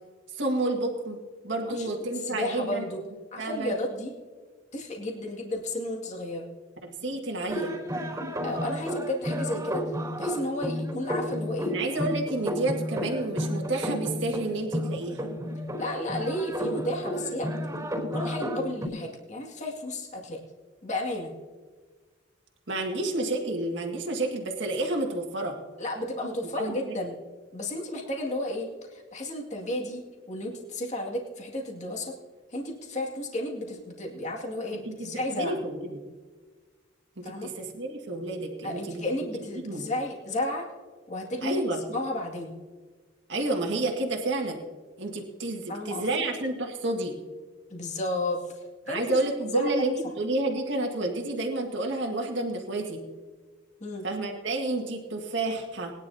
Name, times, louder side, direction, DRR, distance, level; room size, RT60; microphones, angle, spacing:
voice 1, 0.3-1.2 1.4-2.8 3.4-3.7 6.8-7.8 11.7-15.3 22.7-25.6 26.6-27.0 34.9-35.0 35.4-36.0 37.2-39.1 39.6-39.9 41.4-41.8 43.3-44.6 45.0-47.1 48.9-53.0 54.0-55.9, right 2 dB, 65° right, 1 dB, 1.9 m, -30 dB
voice 2, 2.1-3.0 3.3-4.1 4.7-6.5 8.4-9.8 10.2-11.7 15.8-17.5 18.1-20.4 20.8-21.3 25.8-27.2 27.5-32.2 32.5-35.6 37.2-37.5 38.6-40.7 41.1-41.6 41.9-42.5 45.7-46.2 47.7-48.5 48.9-49.7 53.8-54.1, left 1 dB, 35° left, -1 dB, 2.2 m, -32 dB
sound 1, 7.5-18.9, equal, 15° right, 3.9 m, -32 dB
21.0 x 10.5 x 2.8 m, 1.4 s
head